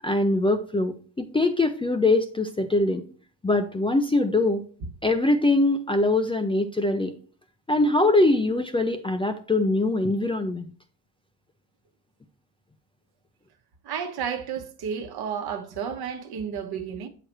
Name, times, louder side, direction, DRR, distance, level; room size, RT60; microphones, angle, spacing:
voice 1, 0.0-3.0 3.4-4.6 5.0-7.1 7.7-10.7, left 2 dB, 10° left, 0.5 m, -23 dB
voice 2, 13.8-17.1, right 7 dB, 55° right, 1.2 m, -32 dB
7.6 x 4.9 x 3.0 m
supercardioid pair, 70°, 46 cm